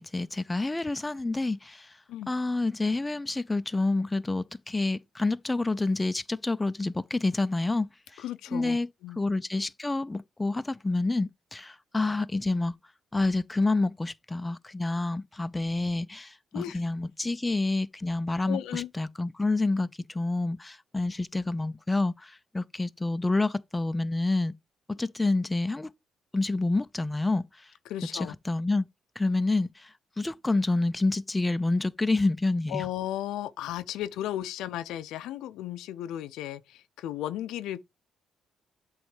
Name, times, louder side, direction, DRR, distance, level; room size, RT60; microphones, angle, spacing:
voice 1, 0.0-1.9 2.3-8.2 8.5-8.9 9.2-12.7 13.1-24.5 24.9-25.9 26.3-27.7 28.1-28.9 29.2-32.9, left 2 dB, 15° left, 0.4 m, -28 dB
voice 2, 8.2-9.2 16.5-16.8 18.5-18.9 27.9-28.3 32.7-37.8, left 12 dB, 90° left, 0.4 m, -35 dB
7.8 x 3.1 x 4.9 m
cardioid pair, 90°, 0 cm